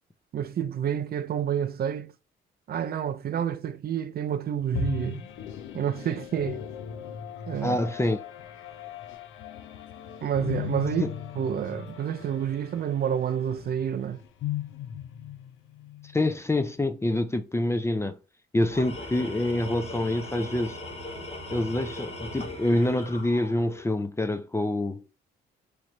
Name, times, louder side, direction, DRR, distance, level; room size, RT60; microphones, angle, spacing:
voice 1, 0.3-2.1 2.7-5.2 5.7-6.7 7.5-7.8 10.2-14.2, right 9 dB, 50° right, 0.5 m, -29 dB
sound 1, 4.7-16.3, left 9 dB, 80° left, 0.7 m, -38 dB
voice 2, 7.6-8.2 11.0-11.1 16.1-18.2 18.5-20.8 21.5-25.0, left 1 dB, 15° left, 0.5 m, -26 dB
Tools, 18.6-24.0, left 1 dB, 30° left, 1.3 m, -39 dB
3.2 x 3.0 x 3.8 m
cardioid pair, 90°, 20 cm